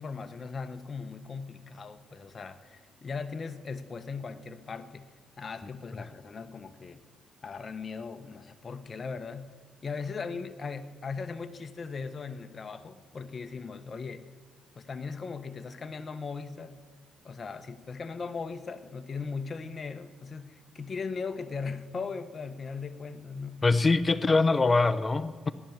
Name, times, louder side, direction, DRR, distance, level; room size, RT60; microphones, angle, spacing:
voice 1, 0.0-5.1 5.4-7.0 7.4-9.5 9.8-14.3 14.8-16.8 17.2-23.6 25.4-25.5, left 5 dB, 40° left, 9 dB, 1.2 m, -38 dB
voice 2, 23.6-25.5, left 3 dB, 25° left, 14 dB, 0.8 m, -23 dB
16.5 x 12.0 x 7.3 m, 1.5 s
cardioid pair, 90°, 0 cm